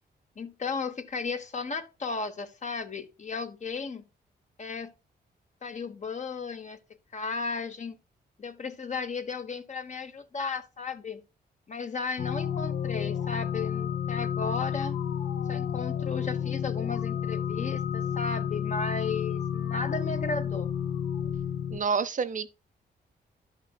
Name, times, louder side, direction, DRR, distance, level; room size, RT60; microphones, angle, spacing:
voice 1, 0.4-4.0 4.6-4.9 5.6-6.8 7.1-8.0 8.4-11.2 11.7-15.0 15.5-20.7, left 4 dB, 45° left, 1.1 m, -35 dB
sound 1, 12.2-21.8, left 8 dB, 80° left, 0.7 m, -31 dB
voice 2, 21.7-22.5, right 5 dB, 50° right, 0.6 m, -28 dB
11.5 x 5.8 x 2.3 m
cardioid pair, 75°, 18 cm